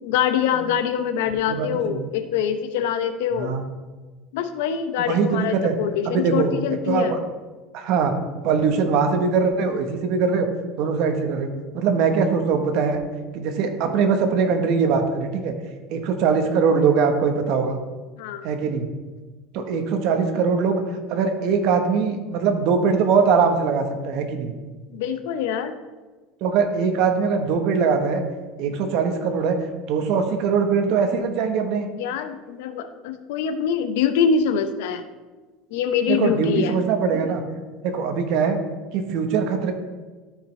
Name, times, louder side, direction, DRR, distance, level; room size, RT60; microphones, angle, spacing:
voice 1, 0.0-3.5 4.3-7.1 18.2-18.4 24.9-25.7 32.0-35.0 35.7-36.8, left 7 dB, 80° left, 10 dB, 0.6 m, -24 dB
voice 2, 1.5-2.1 3.4-3.6 5.0-5.8 6.0-7.2 7.7-8.1 8.4-10.5 10.8-11.5 11.7-13.0 13.3-15.5 15.9-17.8 18.4-18.9 19.5-20.8 21.1-24.5 26.4-28.2 28.6-29.6 29.9-31.9 36.1-37.4 37.8-38.6 38.9-39.7, right 5 dB, 50° right, 6 dB, 1.0 m, -22 dB
12.5 x 5.0 x 3.2 m, 1.3 s
cardioid pair, 165°, 0 cm